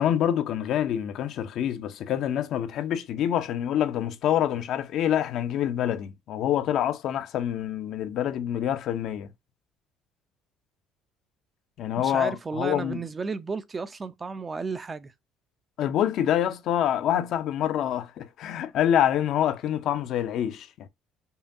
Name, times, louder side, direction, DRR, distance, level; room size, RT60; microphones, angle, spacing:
voice 1, 0.0-9.3 11.8-13.0 15.8-20.9, left 10 dB, 65° left, 0.6 m, -26 dB
voice 2, 12.0-15.1, right 4 dB, 30° right, 0.5 m, -33 dB
5.5 x 2.2 x 2.7 m
supercardioid pair, 85°, 0 cm